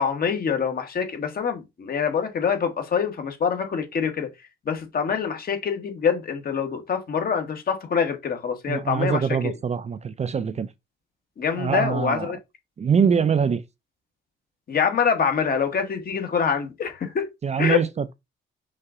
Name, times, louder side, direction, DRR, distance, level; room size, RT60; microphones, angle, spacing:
voice 1, 0.0-4.3 4.6-9.2 11.4-12.4 14.7-17.3 17.6-17.8, left 6 dB, 50° left, 1.4 m, -25 dB
voice 2, 8.7-10.7 11.6-12.4 12.8-13.6 17.4-18.1, right 6 dB, 35° right, 0.5 m, -23 dB
5.6 x 2.5 x 3.7 m
cardioid pair, 90°, 20 cm